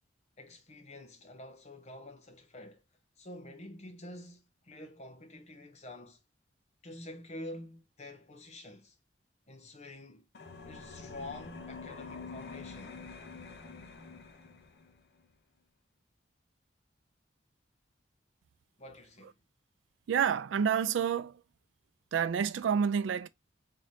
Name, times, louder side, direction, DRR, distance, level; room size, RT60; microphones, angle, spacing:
voice 1, 0.4-2.8 3.2-6.2 6.8-9.0 9.5-10.2 10.6-13.0 18.8-19.3, left 1 dB, 35° left, 0.9 m, -47 dB
sound 1, 10.3-15.0, left 4 dB, 60° left, 0.7 m, -46 dB
voice 2, 20.1-21.4 22.1-23.3, right 7 dB, 85° right, 0.3 m, -29 dB
3.8 x 3.2 x 2.6 m
head